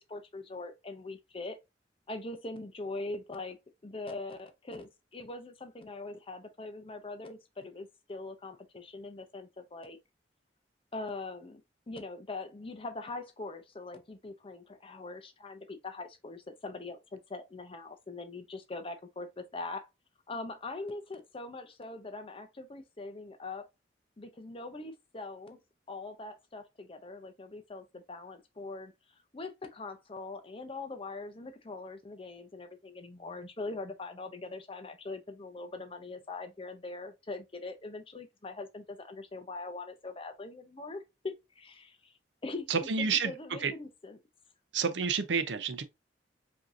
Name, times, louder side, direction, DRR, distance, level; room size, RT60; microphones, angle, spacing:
voice 1, 0.0-1.6 2.1-3.6 3.8-10.0 10.9-11.6 11.9-19.9 20.3-23.7 24.2-25.6 25.9-28.9 29.3-42.1 42.4-44.2, left 3 dB, 30° left, 0.6 m, -42 dB
voice 2, 42.7-43.3 43.6-43.7 44.7-45.8, right 5 dB, 80° right, 0.6 m, -29 dB
5.1 x 2.8 x 2.6 m
head